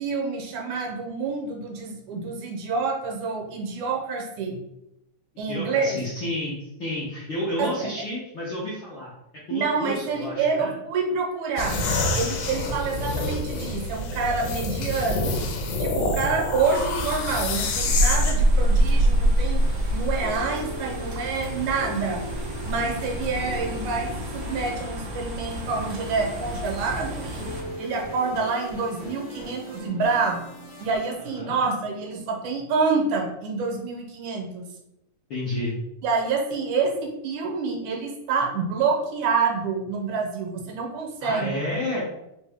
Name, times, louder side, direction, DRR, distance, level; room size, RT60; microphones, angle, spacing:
voice 1, 0.0-4.6 5.4-6.0 7.6-7.9 9.5-11.9 12.1-15.4 15.8-19.7 19.9-22.2 22.7-27.5 27.8-30.5 30.8-34.7 36.0-41.5, right 4 dB, 80° right, 1 dB, 2.1 m, -27 dB
voice 2, 5.5-9.1 9.5-10.7 12.6-12.8 22.8-22.9 31.3-31.6 35.3-35.7 41.2-42.0, left 1 dB, 70° left, -8 dB, 1.2 m, -31 dB
sound 1, 11.6-18.3, left 2 dB, 90° left, 2.2 m, -27 dB
sound 2, 16.6-27.6, right 1 dB, 55° right, 1.0 m, -26 dB
sound 3, 19.4-32.2, equal, 55° left, 0.5 m, -40 dB
5.0 x 2.6 x 3.4 m, 0.85 s
omnidirectional pair, 3.5 m